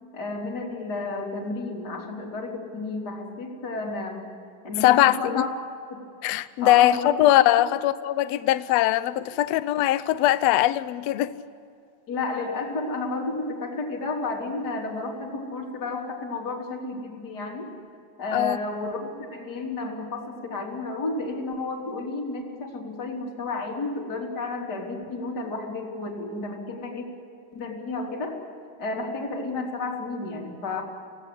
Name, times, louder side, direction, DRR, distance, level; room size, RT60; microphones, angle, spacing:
voice 1, 0.1-4.4 4.6-5.5 5.9-6.0 6.6-7.2 12.1-17.7 18.2-27.1 27.5-28.4 28.8-30.8, left 3 dB, 30° left, 3.8 m, -32 dB
voice 2, 4.8-5.5 6.2-11.3 18.3-18.6, left 14 dB, 80° left, 1.5 m, -21 dB
26.5 x 18.0 x 8.4 m
omnidirectional pair, 4.0 m